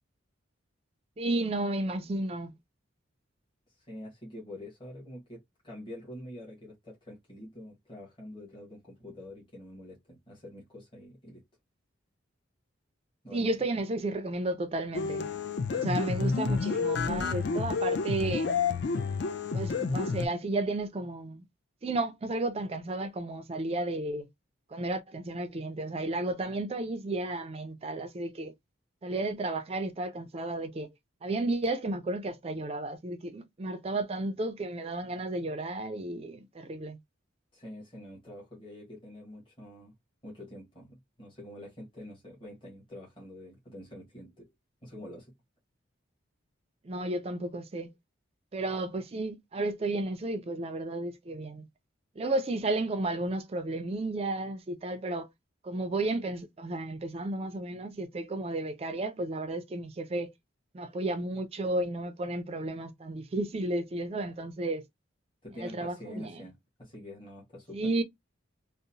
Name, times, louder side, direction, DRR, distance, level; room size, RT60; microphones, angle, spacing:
voice 1, 1.2-2.5 13.3-15.3 15.7-18.5 19.5-21.4 21.8-24.3 24.7-28.5 29.0-30.9 31.2-37.0 46.8-47.9 48.5-51.7 52.2-55.3 55.6-60.3 60.7-64.8 65.6-66.4 67.7-68.0, right 2 dB, 30° right, 0.3 m, -33 dB
voice 2, 3.9-11.4 13.2-13.5 37.5-39.9 40.2-44.5 44.8-45.3 65.4-67.8, left 1 dB, 25° left, 1.1 m, -46 dB
sound 1, 14.9-20.3, left 5 dB, 55° left, 0.4 m, -30 dB
2.8 x 2.0 x 2.6 m
head